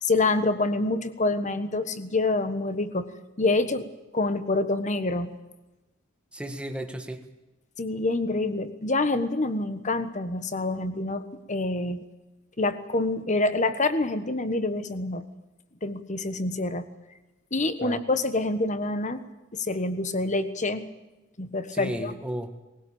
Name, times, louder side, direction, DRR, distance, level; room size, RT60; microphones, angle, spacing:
voice 1, 0.0-3.1 3.4-3.9 4.1-5.3 7.8-12.0 12.6-15.2 15.8-16.9 17.5-19.2 19.5-20.9 21.4-22.1, left 2 dB, 35° left, 11 dB, 1.4 m, -26 dB
voice 2, 6.3-7.2 17.8-18.0 21.7-22.6, right 1 dB, 5° right, 6 dB, 1.7 m, -34 dB
20.0 x 18.5 x 8.8 m, 1.1 s
head